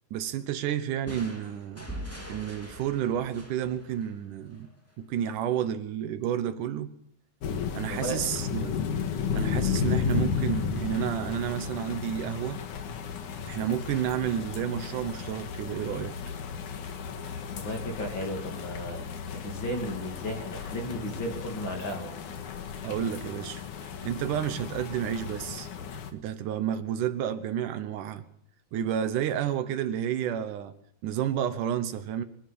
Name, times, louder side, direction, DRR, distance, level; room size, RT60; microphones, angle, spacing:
voice 1, 0.1-1.9 2.3-4.7 5.0-6.9 7.7-8.8 9.3-12.6 13.5-16.1 22.8-23.6 24.0-25.7 26.1-28.2 28.7-30.7 31.0-32.2, right 10 dB, 80° right, 1.8 m, -30 dB
sound 1, 1.1-4.7, equal, 5° left, 1.6 m, -43 dB
sound 2, 7.4-26.1, left 7 dB, 60° left, 2.4 m, -34 dB
voice 2, 7.9-8.2 17.5-19.0 19.3-22.2, equal, 30° left, 2.6 m, -34 dB
25.0 x 12.5 x 8.5 m
omnidirectional pair, 5.3 m